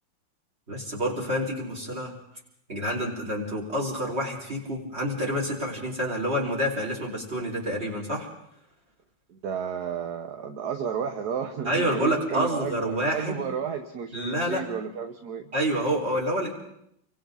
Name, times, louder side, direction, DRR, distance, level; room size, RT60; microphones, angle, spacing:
voice 1, 0.7-2.1 2.7-8.3 11.6-13.5 14.1-14.7 15.5-16.5, equal, 30° right, 0 dB, 4.8 m, -28 dB
voice 2, 9.3-15.5, right 7 dB, 55° right, 5 dB, 1.7 m, -32 dB
30.0 x 24.0 x 4.0 m, 0.76 s
omnidirectional pair, 2.2 m